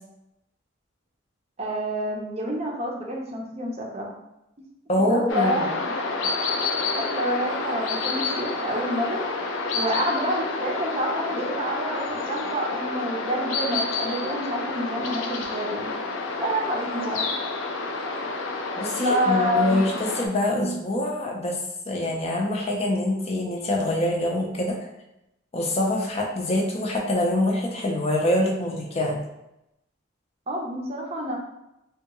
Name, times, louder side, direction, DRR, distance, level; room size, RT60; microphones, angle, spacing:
voice 1, 1.6-4.2 5.1-5.9 6.2-6.3 6.9-9.2 9.5-15.9 16.4-17.2 19.0-19.9 20.5-20.7 30.5-31.4, equal, 35° right, -1 dB, 0.6 m, -28 dB
voice 2, 4.9-5.7 18.8-21.6 21.9-24.8 25.5-29.2, left 1 dB, 35° left, 0 dB, 0.5 m, -25 dB
sound 1, 5.3-20.3, left 3 dB, 85° left, 0.4 m, -29 dB
3.5 x 2.3 x 2.9 m, 0.88 s
head